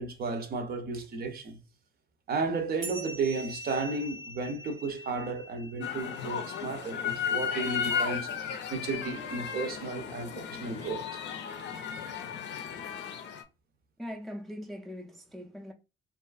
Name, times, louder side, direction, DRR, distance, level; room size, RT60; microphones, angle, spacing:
voice 1, 0.0-1.6 2.3-11.2, right 3 dB, 50° right, 0.6 m, -33 dB
sound 1, 2.8-7.7, right 1 dB, 80° right, 0.9 m, -45 dB
sound 2, 5.8-13.4, left 7 dB, 65° left, 0.5 m, -35 dB
voice 2, 14.0-15.7, equal, ahead, 0.4 m, -41 dB
2.5 x 2.4 x 2.3 m
cardioid pair, 90°, 20 cm